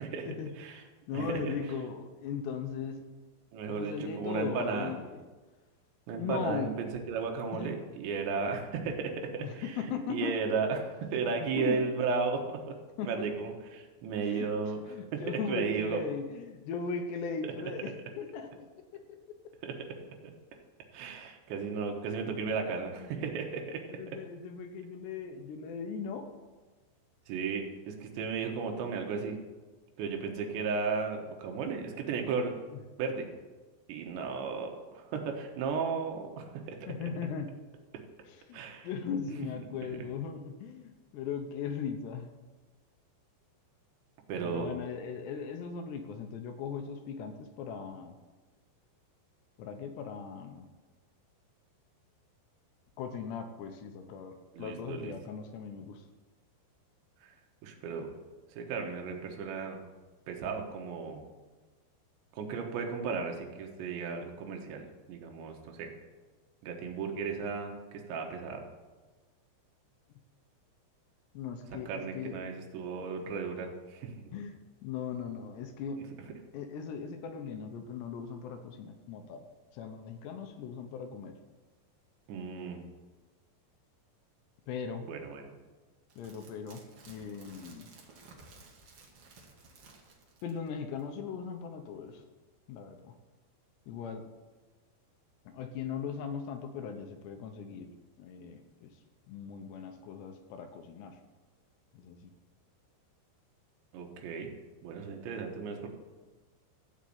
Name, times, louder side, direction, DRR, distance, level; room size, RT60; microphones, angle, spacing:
voice 1, 0.0-0.8 1.1-1.6 3.5-4.9 6.1-9.8 10.1-12.8 13.0-14.8 15.1-16.0 19.6-19.8 20.2-20.3 20.9-24.0 27.3-29.4 30.0-32.6 33.0-33.3 33.9-36.8 38.5-38.9 44.3-44.7 54.5-55.1 57.2-57.3 57.6-58.1 58.5-59.8 60.3-61.2 62.3-64.8 65.1-65.9 66.6-68.6 71.9-74.1 82.3-82.8 85.1-85.5 103.9-104.5 104.8-105.9, right 5 dB, 75° right, 3 dB, 3.5 m, -35 dB
voice 2, 0.8-3.1 3.8-5.2 6.1-6.7 7.5-7.7 9.4-10.3 11.4-11.8 13.0-13.3 14.2-14.5 14.9-18.7 23.0-23.1 23.9-26.3 36.9-37.5 38.3-42.3 44.4-48.2 49.6-50.6 53.0-56.0 71.3-72.4 74.3-74.6 74.8-76.0 76.5-79.5 79.7-81.3 84.7-85.1 86.2-87.9 90.4-92.2 92.7-93.1 93.9-94.2 95.5-97.9 98.2-99.0 99.3-101.2 101.9-102.3, left 6 dB, 75° left, 6 dB, 2.8 m, -38 dB
sound 1, 86.1-90.7 91.0-91.1, right 3 dB, 55° right, 1.6 m, -55 dB
14.0 x 5.2 x 8.6 m, 1.3 s
omnidirectional pair, 5.2 m